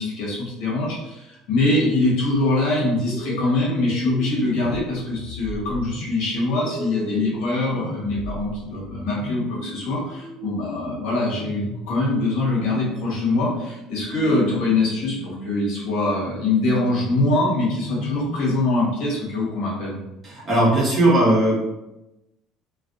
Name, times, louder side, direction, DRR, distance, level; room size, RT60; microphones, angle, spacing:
voice 1, 0.0-20.0, left 2 dB, 75° left, -5 dB, 1.3 m, -23 dB
sound 1, 2.8-18.9, equal, ahead, 0.7 m, -36 dB
voice 2, 20.2-21.6, right 1 dB, 25° right, -6 dB, 1.1 m, -18 dB
3.3 x 2.3 x 2.6 m, 0.94 s
cardioid pair, 160°, 0 cm